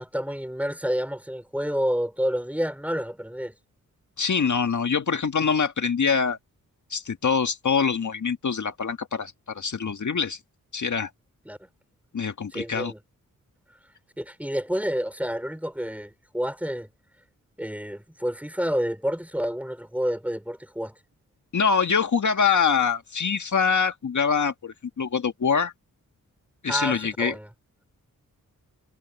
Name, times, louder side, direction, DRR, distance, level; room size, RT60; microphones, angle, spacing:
voice 1, 0.0-3.5 11.5-11.6 12.5-13.0 14.2-16.9 17.6-21.0 26.7-27.5, equal, 5° right, 5.2 m, -29 dB
voice 2, 4.2-6.4 6.9-10.4 10.7-11.1 12.1-12.9 21.5-25.7 26.6-27.4, left 6 dB, 60° left, 1.8 m, -24 dB
cardioid pair, 50°, 34 cm